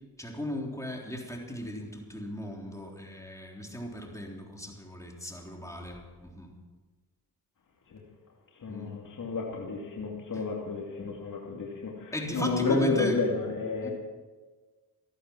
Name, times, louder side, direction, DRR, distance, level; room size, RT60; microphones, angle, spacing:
voice 1, 0.2-6.5 8.7-8.9 10.3-10.5 12.1-13.2 13.8-13.9, left 1 dB, 10° left, 1 dB, 3.5 m, -37 dB
voice 2, 8.6-13.9, left 3 dB, 50° left, -1 dB, 2.5 m, -31 dB
14.0 x 12.0 x 6.2 m, 1.4 s
supercardioid pair, 55°, 40 cm